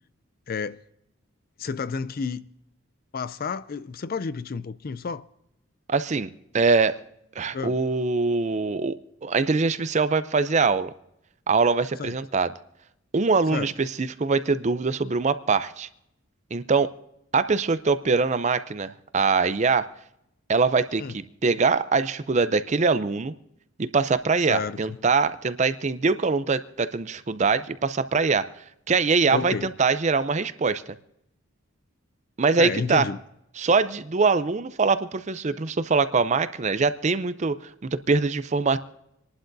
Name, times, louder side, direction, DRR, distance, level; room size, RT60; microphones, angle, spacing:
voice 1, 0.5-0.8 1.6-2.4 3.1-5.3 7.5-7.8 12.0-12.2 13.5-13.7 21.0-21.1 24.5-25.0 29.3-29.7 32.6-33.2, left 5 dB, 45° left, 0.4 m, -30 dB
voice 2, 5.9-6.3 6.5-7.0 7.4-10.9 11.5-12.5 13.1-15.9 16.5-16.9 17.3-19.9 20.5-23.3 23.8-28.5 28.9-30.8 32.4-33.1 33.6-38.8, right 4 dB, 35° right, 0.5 m, -23 dB
27.5 x 11.5 x 2.7 m
head